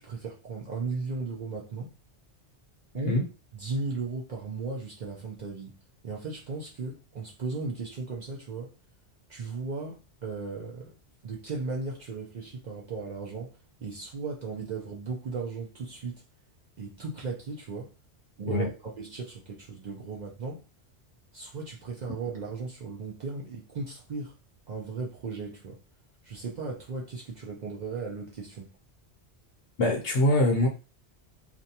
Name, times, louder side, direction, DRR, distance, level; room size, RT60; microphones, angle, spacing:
voice 1, 0.0-1.9 2.9-3.2 3.5-5.8 6.0-8.7 9.3-10.9 11.2-16.2 16.8-17.9 18.4-20.6 21.3-24.3 24.7-25.8 26.2-28.7, right 4 dB, 55° right, 0.5 m, -36 dB
voice 2, 29.8-30.7, left 1 dB, 65° left, 0.9 m, -23 dB
2.5 x 2.2 x 2.7 m
omnidirectional pair, 1.1 m